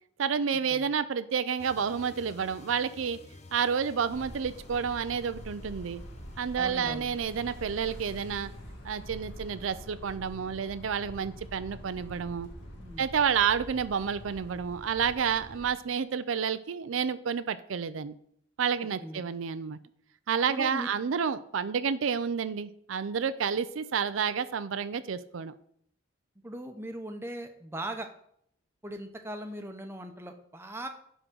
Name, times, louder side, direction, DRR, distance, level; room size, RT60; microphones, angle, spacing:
voice 1, 0.2-3.2 3.5-6.0 6.4-8.5 8.8-12.5 13.0-18.1 18.6-19.8 20.3-25.5, right 6 dB, 85° right, 13 dB, 0.5 m, -30 dB
sound 1, 1.6-7.6, left 2 dB, 35° left, 0.7 m, -53 dB
sound 2, 4.1-15.6, equal, 65° left, 2.1 m, -45 dB
voice 2, 6.5-7.1 12.8-13.1 19.0-19.2 20.5-20.9 26.4-28.1 28.8-30.9, right 1 dB, 10° right, 5 dB, 0.8 m, -39 dB
10.0 x 3.8 x 6.1 m, 0.69 s
head